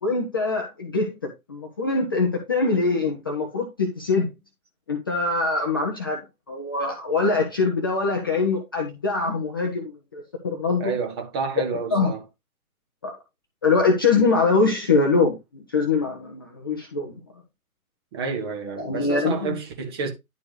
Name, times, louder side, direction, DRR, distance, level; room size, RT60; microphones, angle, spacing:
voice 1, 0.0-4.3 4.9-10.9 11.9-12.1 13.0-13.1 13.6-17.1 18.8-19.5, left 3 dB, 15° left, 0.6 m, -23 dB
voice 2, 10.8-12.2 18.1-20.1, right 5 dB, 15° right, 0.9 m, -29 dB
10.5 x 4.4 x 3.2 m
figure-of-eight pair, 130°, 44 cm